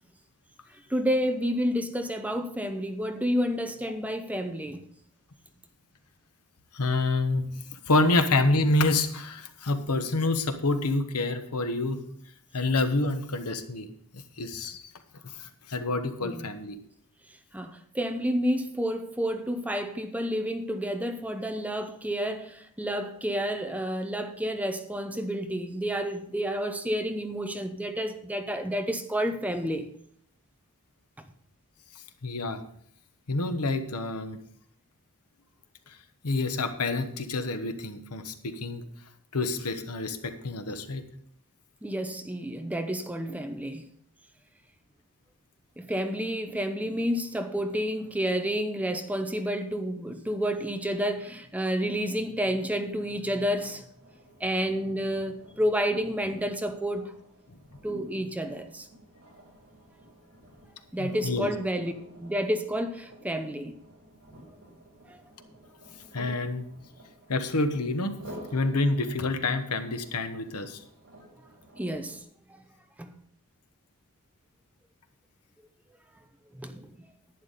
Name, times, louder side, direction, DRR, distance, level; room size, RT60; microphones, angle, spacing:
voice 1, 0.9-4.8 16.2-16.5 17.5-29.9 41.8-43.9 45.8-53.8 54.4-57.1 57.8-58.9 60.9-61.9 62.2-63.8 71.8-72.2 73.0-73.1 76.6-76.9, equal, 5° right, 0.7 m, -30 dB
voice 2, 6.7-7.5 7.9-12.0 12.5-13.9 14.4-14.8 15.4-16.8 32.2-32.6 33.3-34.4 36.2-38.8 39.3-41.0 61.0-61.5 66.1-66.7 67.3-68.2 68.5-70.8, left 2 dB, 90° left, 1.2 m, -27 dB
sound 1, 53.0-72.2, right 1 dB, 65° right, 4.8 m, -51 dB
11.0 x 10.0 x 4.1 m
head